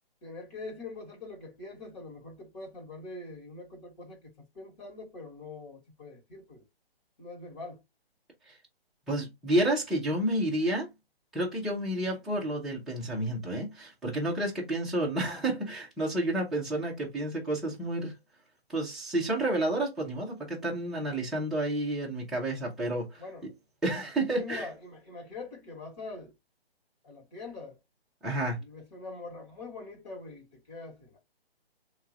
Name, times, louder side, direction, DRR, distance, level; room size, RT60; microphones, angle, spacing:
voice 1, 0.2-6.6 7.2-7.8 23.2-23.5 24.4-26.3 27.0-27.7 28.6-31.2, left 3 dB, 40° left, 1.9 m, -43 dB
voice 2, 9.1-10.9 11.3-18.1 18.7-23.5 23.8-24.7 28.2-28.6, right 1 dB, ahead, 0.7 m, -30 dB
3.4 x 2.9 x 3.0 m
hypercardioid pair, 150°, 31 cm